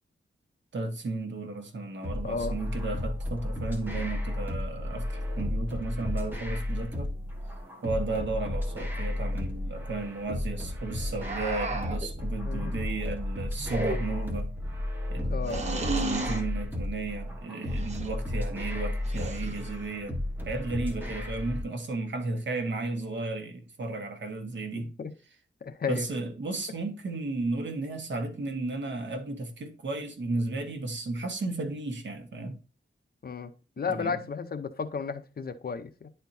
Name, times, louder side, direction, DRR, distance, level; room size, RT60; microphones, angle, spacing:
voice 1, 0.7-7.1 7.8-14.5 15.1-20.2 20.4-24.9 25.9-32.6 33.9-34.2, right 2 dB, 65° right, 1.3 m, -34 dB
sound 1, 2.0-21.6, left 1 dB, 10° right, 1.4 m, -33 dB
voice 2, 2.2-2.6 12.4-12.7 15.3-15.7 24.7-25.1 25.6-26.1 33.2-33.5 33.8-36.1, left 5 dB, 50° left, 0.6 m, -33 dB
sound 2, 11.2-12.1 13.6-14.3 15.5-16.5 17.7-18.1 19.0-19.8, right 2 dB, 35° right, 1.0 m, -34 dB
10.5 x 4.4 x 2.6 m
wide cardioid pair, 175°, 21 cm